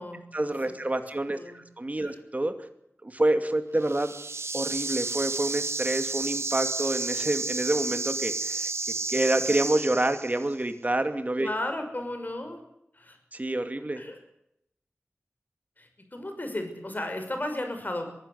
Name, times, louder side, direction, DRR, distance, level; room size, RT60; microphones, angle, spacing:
voice 1, 0.3-2.5 3.0-4.1 4.5-8.7 9.1-11.5 13.3-14.0, right 1 dB, 35° right, 8 dB, 2.4 m, -27 dB
voice 2, 1.3-1.6 2.0-2.2 11.4-12.6 12.9-13.2 14.0-14.2 15.8-18.1, left 1 dB, 40° left, 6 dB, 5.9 m, -34 dB
sound 1, 3.8-10.5, right 3 dB, 70° right, 1.1 m, -31 dB
22.5 x 16.0 x 8.2 m, 0.78 s
wide cardioid pair, 70°, 5 cm